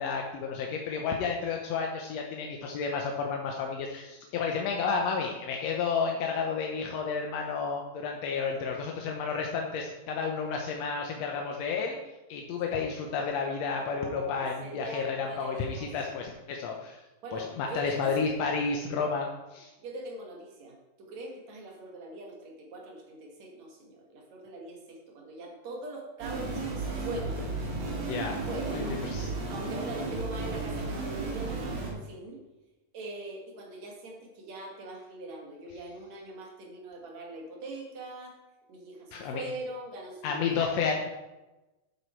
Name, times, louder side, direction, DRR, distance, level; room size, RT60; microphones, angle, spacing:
voice 1, 0.0-12.0 12.3-17.0 17.3-19.7 28.0-28.4 28.7-29.3 39.1-39.4 40.2-41.1, left 5 dB, 70° left, 1 dB, 1.7 m, -31 dB
voice 2, 13.9-16.2 17.2-18.3 19.8-27.5 28.3-29.2 29.5-32.4 32.9-38.4 38.7-40.9, right 2 dB, 55° right, 0 dB, 3.0 m, -42 dB
sound 1, 26.2-31.9, right 3 dB, 85° right, 4.1 m, -34 dB
10.0 x 7.8 x 4.5 m, 1.0 s
omnidirectional pair, 3.9 m